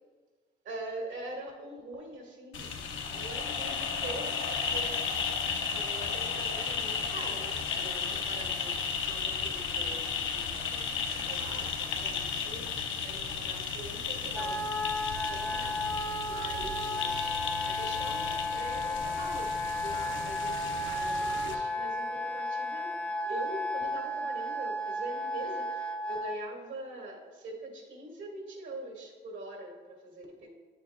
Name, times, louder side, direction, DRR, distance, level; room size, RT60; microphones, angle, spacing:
voice 1, 0.6-2.7 3.1-8.8 9.1-12.7 13.0-14.6 15.1-17.4 17.7-23.0 23.2-30.5, right 2 dB, 70° right, 0 dB, 1.8 m, -43 dB
sound 1, 2.5-21.5, left 6 dB, 75° left, 0.8 m, -34 dB
Wind instrument woodwind instrument, 14.3-26.4, left 1 dB, 5° left, 0.4 m, -33 dB
9.2 x 7.0 x 2.3 m, 1.4 s
cardioid pair, 90°, 20 cm